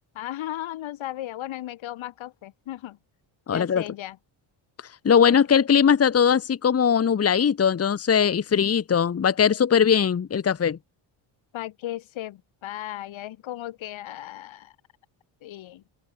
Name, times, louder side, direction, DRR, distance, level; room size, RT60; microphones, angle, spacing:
voice 1, 0.1-3.0 3.5-4.2 11.5-14.7 15.4-15.8, left 14 dB, 70° left, 3.1 m, -36 dB
voice 2, 3.5-3.8 5.0-10.8, left 7 dB, 30° left, 1.5 m, -20 dB
cardioid pair, 140°, 48 cm